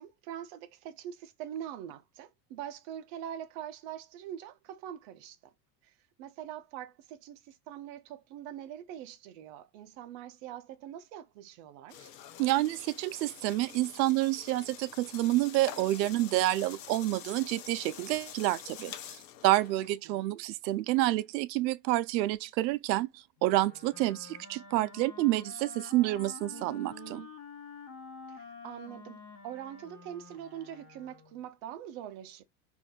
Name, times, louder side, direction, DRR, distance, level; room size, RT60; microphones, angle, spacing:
voice 1, 0.0-5.5 5.8-5.9 6.2-12.1 19.8-20.4 26.5-27.3 28.3-32.4, right 10 dB, 40° right, 0.6 m, -44 dB
sound 1, 11.9-19.9, left 10 dB, 80° left, 0.8 m, -47 dB
voice 2, 12.4-19.2 19.4-27.2, right 16 dB, 85° right, 0.6 m, -29 dB
Wind instrument woodwind instrument, 23.4-31.4, left 5 dB, 45° left, 1.4 m, -49 dB
2.6 x 2.6 x 3.6 m
supercardioid pair, 145°, 50 cm